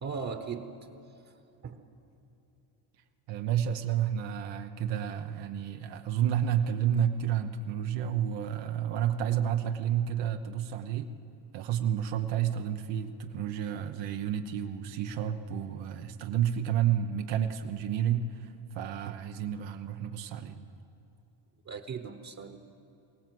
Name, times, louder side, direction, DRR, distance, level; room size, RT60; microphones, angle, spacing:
voice 1, 0.0-0.8 1.6-1.8 21.7-22.6, right 5 dB, 40° right, 7 dB, 1.1 m, -37 dB
voice 2, 3.3-11.1 11.5-20.6, right 9 dB, 90° right, 6 dB, 1.0 m, -30 dB
22.5 x 17.5 x 7.7 m, 2.8 s
cardioid pair, 125°, 43 cm